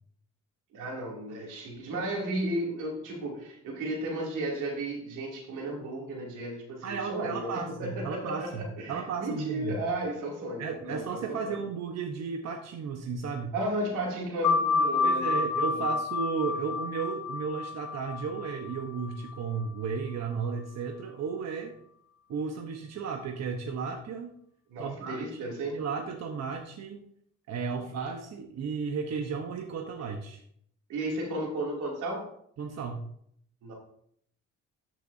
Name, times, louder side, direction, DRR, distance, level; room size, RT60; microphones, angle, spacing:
voice 1, 0.7-11.6 13.5-15.8 24.7-25.8 30.9-32.3 33.6-33.7, right 1 dB, 90° right, -2 dB, 2.8 m, -34 dB
voice 2, 6.8-8.6 8.9-9.8 10.6-13.5 15.0-21.8 22.3-24.3 24.8-27.0 27.5-30.4 32.6-33.0, right 5 dB, 60° right, 3 dB, 1.0 m, -34 dB
sound 1, 14.4-19.6, left 4 dB, 85° left, 1.0 m, -29 dB
13.5 x 6.1 x 2.7 m, 0.67 s
cardioid pair, 90°, 30 cm